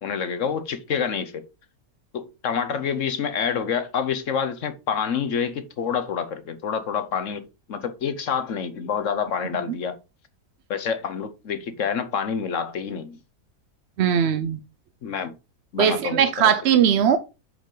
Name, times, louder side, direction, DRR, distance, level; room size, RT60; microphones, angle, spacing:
voice 1, 0.0-1.4 2.1-10.0 10.7-13.2 15.0-15.3 15.7-16.3, left 7 dB, 60° left, 1.1 m, -27 dB
voice 2, 14.0-14.6 15.8-17.2, right 8 dB, 60° right, 0.7 m, -19 dB
7.8 x 5.1 x 3.9 m
omnidirectional pair, 1.6 m